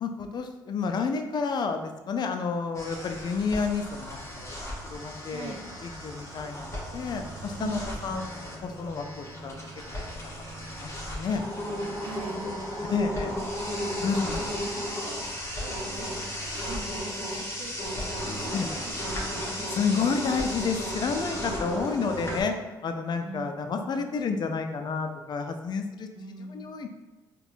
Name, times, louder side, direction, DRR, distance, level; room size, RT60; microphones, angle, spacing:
voice 1, 0.0-4.6 4.9-5.5 5.8-8.3 8.6-9.5 10.3-10.9 11.2-11.4 12.9-13.3 14.0-14.4 18.5-18.7 19.7-22.5 22.8-26.1 26.5-26.9, left 5 dB, 50° left, 6 dB, 0.4 m, -30 dB
sound 1, 2.7-22.4, equal, 30° left, 0.9 m, -35 dB
voice 2, 5.3-5.6 7.5-8.3 12.0-13.5 14.1-17.9 18.3-19.9 21.4-22.0 23.2-23.5 23.8-24.0 26.1-26.7, right 4 dB, 65° right, 1 dB, 0.6 m, -43 dB
4.1 x 2.2 x 2.5 m, 1.1 s
supercardioid pair, 55°, 9 cm